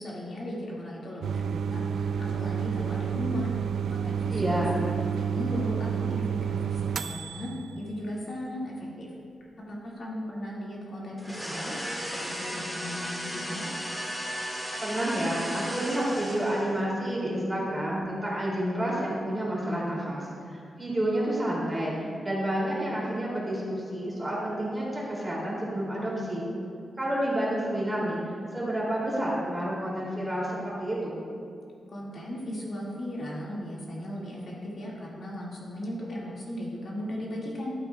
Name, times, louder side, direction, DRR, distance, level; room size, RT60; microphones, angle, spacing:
voice 1, 0.0-3.5 3.9-7.5 7.8-9.1 9.7-11.7 12.0-13.7 31.9-37.7, left 1 dB, 50° left, -5 dB, 2.0 m, -37 dB
sound 1, 1.2-7.7, right 7 dB, 80° right, 0.4 m, -30 dB
voice 2, 4.3-4.8 14.8-26.5 27.0-31.2, right 1 dB, 10° right, -6 dB, 2.7 m, -29 dB
sound 2, 11.2-16.8, equal, 5° left, 1.8 m, -35 dB
14.0 x 12.0 x 2.3 m, 2.4 s
wide cardioid pair, 160°, 0 cm